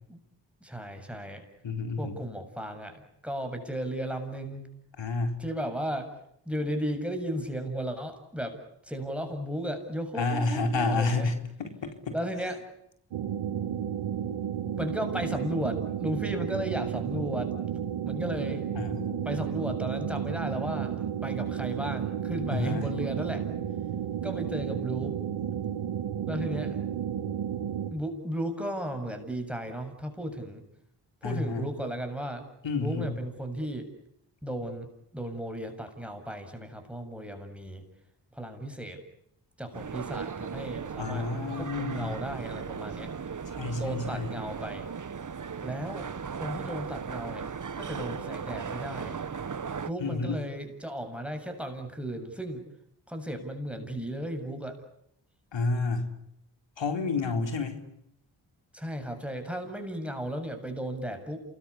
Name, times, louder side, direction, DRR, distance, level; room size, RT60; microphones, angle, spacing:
voice 1, 0.6-1.4 2.0-4.7 5.4-6.1 6.5-8.6 8.8-11.3 12.1-12.6 14.8-17.5 18.0-18.7 19.2-23.5 24.2-25.2 26.3-26.8 27.9-30.6 31.2-32.5 32.7-33.9 34.4-34.9 35.1-37.8 38.3-39.0 39.6-41.3 41.6-43.1 43.7-44.9 45.6-46.0 46.3-47.4 47.8-49.2 49.8-52.6 53.1-54.8 58.7-61.4, equal, 5° right, 6 dB, 7.5 m, -35 dB
voice 2, 1.6-2.2 5.0-5.4 10.2-12.1 18.7-19.3 22.5-22.9 31.2-31.7 32.6-33.2 41.0-42.2 43.5-44.3 50.0-50.4 55.5-56.1 56.8-57.8, left 3 dB, 70° left, 6 dB, 4.1 m, -30 dB
sound 1, 13.1-27.9, right 9 dB, 85° right, 1.9 m, -32 dB
sound 2, 39.7-49.9, right 6 dB, 40° right, 1.4 m, -37 dB
28.5 x 21.5 x 8.6 m, 0.77 s
supercardioid pair, 45°, 46 cm